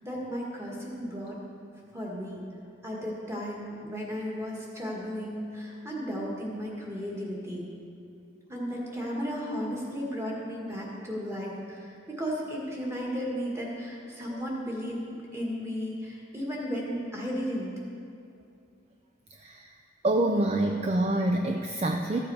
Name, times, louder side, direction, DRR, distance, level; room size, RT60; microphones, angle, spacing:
voice 1, 0.0-1.4 1.9-2.4 2.8-7.6 8.5-17.7, equal, 15° right, -3 dB, 1.7 m, -34 dB
voice 2, 20.0-22.2, right 1 dB, 35° right, 3 dB, 0.4 m, -26 dB
14.0 x 7.1 x 4.8 m, 2.5 s
head